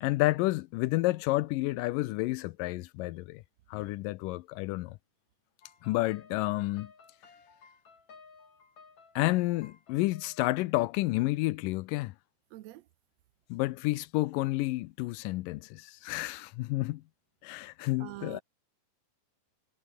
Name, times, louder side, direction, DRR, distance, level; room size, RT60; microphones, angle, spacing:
voice 1, 0.0-3.4 3.7-5.0 5.8-6.9 9.2-12.1 13.5-17.0 17.4-18.4, left 19 dB, 90° left, 2.3 m, -30 dB
sound 1, 5.6-10.6, left 5 dB, 55° left, 5.6 m, -57 dB
voice 2, 12.5-12.8 18.0-18.4, right 16 dB, 75° right, 1.6 m, -44 dB
omnidirectional pair, 3.9 m